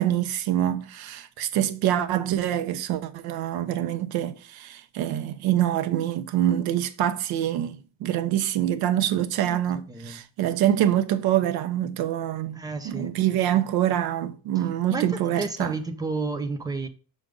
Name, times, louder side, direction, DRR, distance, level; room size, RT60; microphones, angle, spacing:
voice 1, 0.0-12.6 12.8-15.8, right 11 dB, 80° right, 0.9 m, -25 dB
voice 2, 12.5-13.1 14.9-16.9, right 3 dB, 10° right, 0.8 m, -31 dB
6.4 x 5.1 x 3.8 m
cardioid pair, 155°, 37 cm